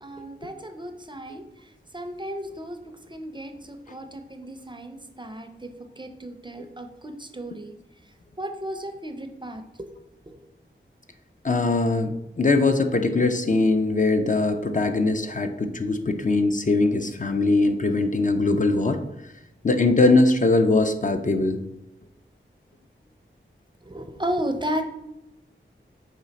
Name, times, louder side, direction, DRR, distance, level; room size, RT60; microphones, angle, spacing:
voice 1, 0.0-1.4 1.9-2.8 3.1-5.7 6.0-7.7 8.4-9.9 10.3-10.4 23.8-24.8, equal, 20° right, 6 dB, 0.5 m, -34 dB
voice 2, 11.4-19.0 19.6-21.6, left 3 dB, 40° left, 6 dB, 0.4 m, -21 dB
5.1 x 2.4 x 4.0 m, 0.86 s
wide cardioid pair, 50°, 21 cm